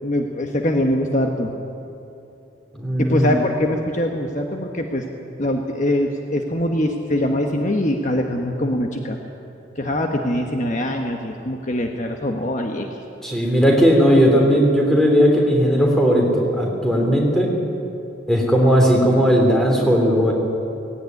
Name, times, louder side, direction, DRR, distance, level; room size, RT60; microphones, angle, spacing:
voice 1, 0.0-1.5 3.0-5.0 5.4-9.2 9.8-12.9, left 1 dB, 40° left, 3 dB, 1.2 m, -23 dB
voice 2, 2.7-3.3 13.2-17.5 18.3-20.3, equal, ahead, 0 dB, 3.4 m, -17 dB
17.5 x 17.5 x 9.6 m, 2.9 s
head